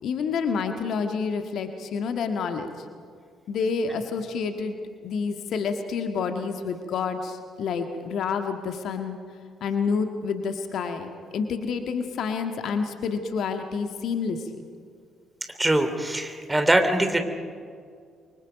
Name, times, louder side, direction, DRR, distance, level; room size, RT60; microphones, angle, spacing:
voice 1, 0.0-2.7 3.5-4.8 5.0-9.2 9.6-14.4, left 5 dB, 55° left, 6 dB, 1.6 m, -28 dB
voice 2, 15.6-17.2, right 1 dB, 15° right, 7 dB, 3.1 m, -22 dB
29.0 x 24.0 x 5.2 m, 2.1 s
figure-of-eight pair, 45°, 0 cm